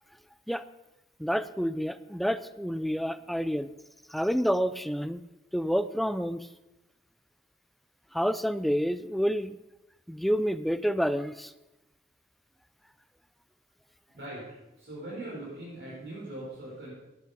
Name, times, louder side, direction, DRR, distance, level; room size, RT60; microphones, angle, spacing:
voice 1, 1.2-3.7 4.1-5.2 5.5-6.5 8.1-9.6 10.1-11.5, equal, ahead, 14 dB, 0.3 m, -28 dB
voice 2, 14.1-14.5 14.8-16.9, right 1 dB, 85° right, -7 dB, 5.3 m, -40 dB
12.0 x 10.0 x 5.3 m, 1.0 s
head